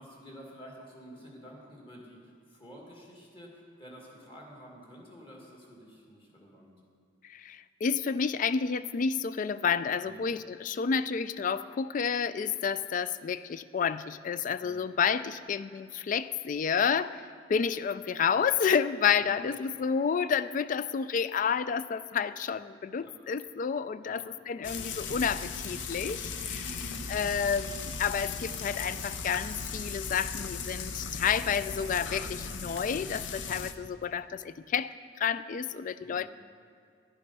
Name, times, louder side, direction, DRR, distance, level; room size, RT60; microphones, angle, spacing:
voice 1, 0.0-6.8 10.0-10.3 14.6-14.8 19.2-19.4 23.0-23.2 24.0-24.2 26.5-27.1 36.0-36.3, equal, 30° left, -1 dB, 2.0 m, -49 dB
voice 2, 7.2-17.2 17.5-26.6 27.1-36.3, left 6 dB, 45° left, 15 dB, 0.3 m, -30 dB
Frying (food), 24.6-33.7, left 5 dB, 80° left, 0.7 m, -37 dB
10.5 x 10.0 x 5.4 m, 2.3 s
head